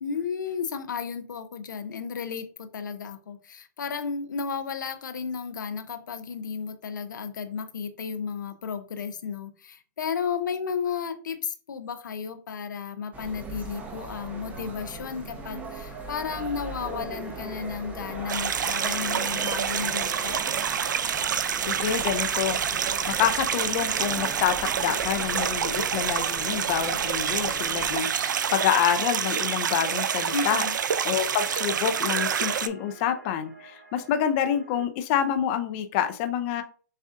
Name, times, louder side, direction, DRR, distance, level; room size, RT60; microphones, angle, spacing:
voice 1, 0.0-20.4 30.3-30.8, left 6 dB, 85° left, 9 dB, 0.6 m, -33 dB
sound 1, 13.1-28.0, right 3 dB, 15° right, 0.8 m, -40 dB
sound 2, 15.6-34.8, right 5 dB, 55° right, 2.1 m, -51 dB
sound 3, 18.3-32.7, right 8 dB, 85° right, 0.4 m, -27 dB
voice 2, 21.7-22.8 23.1-30.6 31.0-36.6, left 9 dB, 40° left, 8 dB, 0.5 m, -27 dB
6.4 x 2.4 x 2.5 m, 0.41 s
hypercardioid pair, 135°, 10 cm